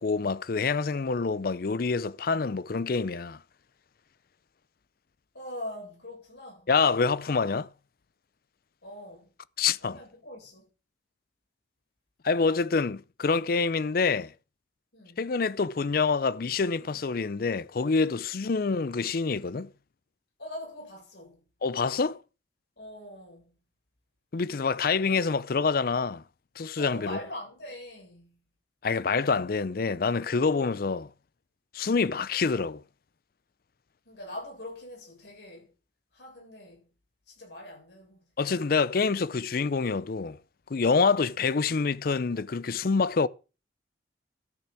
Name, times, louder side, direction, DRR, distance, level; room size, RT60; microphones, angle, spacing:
voice 1, 0.0-3.4 6.7-7.7 9.6-10.0 12.2-14.3 15.2-19.7 21.6-22.2 24.3-26.2 26.6-27.2 28.8-31.1 31.7-32.8 38.4-40.4 40.7-43.3, left 4 dB, 50° left, 0.5 m, -26 dB
voice 2, 5.3-6.7 8.8-9.3 9.8-10.7 14.9-15.3 20.4-21.4 22.8-23.5 26.8-28.4 34.1-35.7 36.1-36.9 37.3-38.3, left 1 dB, 70° left, 7.5 m, -42 dB
12.5 x 6.9 x 6.0 m
head